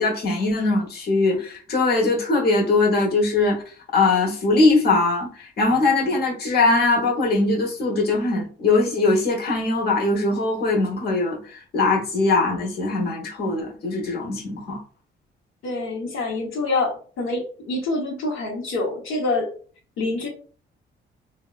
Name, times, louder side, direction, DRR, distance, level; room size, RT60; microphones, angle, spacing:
voice 1, 0.0-14.8, left 3 dB, 55° left, 1.0 m, -21 dB
voice 2, 15.6-19.5 20.0-20.3, left 2 dB, 90° left, 0.9 m, -26 dB
3.3 x 2.1 x 2.3 m
cardioid pair, 90°, 20 cm